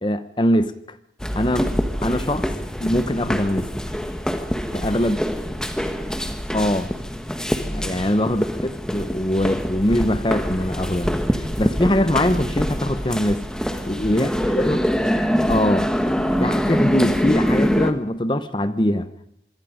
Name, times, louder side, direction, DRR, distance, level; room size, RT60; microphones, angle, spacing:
voice 1, 0.0-1.0 1.4-2.5 2.8-3.7 4.7-5.2 6.5-6.9 7.7-11.2 11.6-13.4 13.9-14.8 15.5-15.9 16.4-19.1, left 1 dB, 25° left, 0.9 m, -22 dB
sound 1, 1.2-17.9, equal, 5° left, 1.3 m, -24 dB
voice 2, 4.7-6.0 13.8-14.9, equal, 75° right, 5.6 m, -45 dB
26.0 x 23.0 x 5.1 m
head